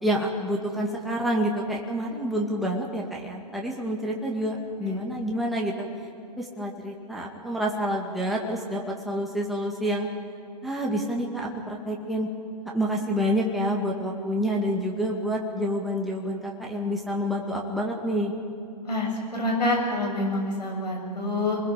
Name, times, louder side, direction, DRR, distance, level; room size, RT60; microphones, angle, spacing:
voice 1, 0.0-5.9 6.4-10.1 10.6-12.3 12.7-18.3, equal, ahead, -2 dB, 2.2 m, -28 dB
voice 2, 18.8-21.6, left 2 dB, 90° left, 0 dB, 7.5 m, -27 dB
28.5 x 21.0 x 5.3 m, 2.5 s
hypercardioid pair, 135°, 21 cm